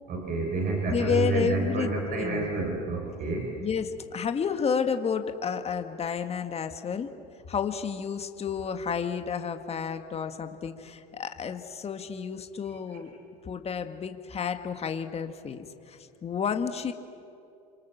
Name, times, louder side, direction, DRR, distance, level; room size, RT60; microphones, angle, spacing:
voice 1, 0.1-3.5, right 3 dB, 45° right, 0 dB, 5.4 m, -29 dB
voice 2, 0.8-2.6 3.6-7.1 7.5-13.2 13.4-16.9, left 6 dB, 30° left, 7 dB, 1.9 m, -31 dB
28.0 x 26.0 x 7.4 m, 2.6 s
hypercardioid pair, 85°, 21 cm